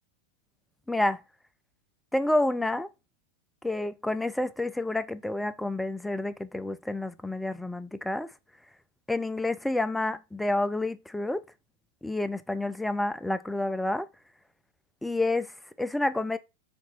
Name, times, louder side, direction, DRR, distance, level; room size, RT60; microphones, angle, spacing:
voice 1, 0.9-1.2 2.1-2.9 3.6-8.3 9.1-11.4 12.0-14.1 15.0-16.4, left 2 dB, 5° left, 0.3 m, -29 dB
4.3 x 2.8 x 4.2 m
figure-of-eight pair, 90°, 0 cm